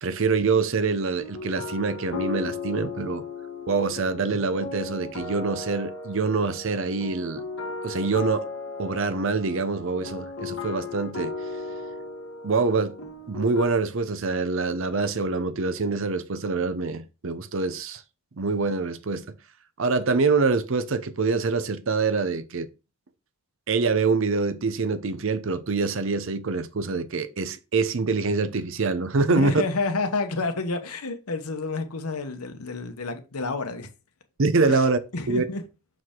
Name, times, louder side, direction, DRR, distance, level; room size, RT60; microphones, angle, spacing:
voice 1, 0.0-3.2 3.7-7.4 7.8-8.5 8.8-11.3 12.4-12.9 13.3-18.0 18.4-19.3 19.8-22.7 23.7-29.5 34.4-35.0 35.3-35.4, right 4 dB, 60° right, 0.6 m, -25 dB
sound 1, 1.2-13.7, left 3 dB, 65° left, 1.9 m, -36 dB
voice 2, 29.3-33.9 34.7-34.9 35.1-35.6, left 3 dB, 85° left, 1.0 m, -29 dB
6.2 x 4.8 x 3.7 m
head